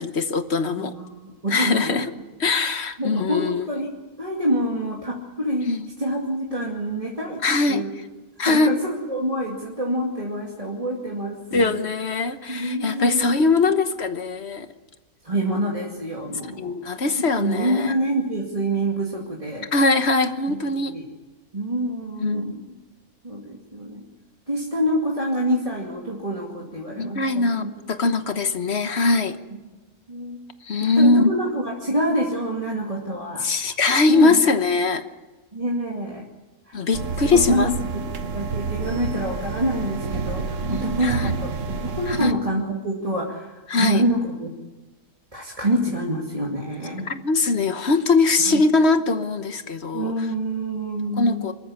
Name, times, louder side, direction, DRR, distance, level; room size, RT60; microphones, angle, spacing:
voice 1, 0.0-0.9 1.5-2.1 2.4-3.7 5.6-5.9 7.4-7.8 8.4-8.7 11.5-14.7 16.6-17.9 19.7-20.9 22.2-22.5 27.0-29.4 30.6-31.3 33.4-35.0 36.7-37.7 40.6-41.3 42.1-42.3 43.7-44.0 47.0-50.3 51.2-51.5, left 3 dB, 45° left, 10 dB, 1.3 m, -21 dB
voice 2, 0.8-2.0 3.0-5.7 6.0-7.4 7.7-7.9 8.4-11.8 12.5-13.5 15.2-16.7 17.4-19.7 20.7-21.0 21.5-22.7 23.2-24.0 24.5-27.7 30.1-30.4 30.8-33.5 34.1-34.4 35.5-36.2 36.7-36.9 37.2-44.5 45.3-47.1 48.5-48.6 49.9-51.4, right 1 dB, 20° right, -2 dB, 2.4 m, -26 dB
sound 1, 36.9-42.3, right 5 dB, 55° right, 1.4 m, -29 dB
24.5 x 14.0 x 9.7 m, 1.2 s
omnidirectional pair, 1.6 m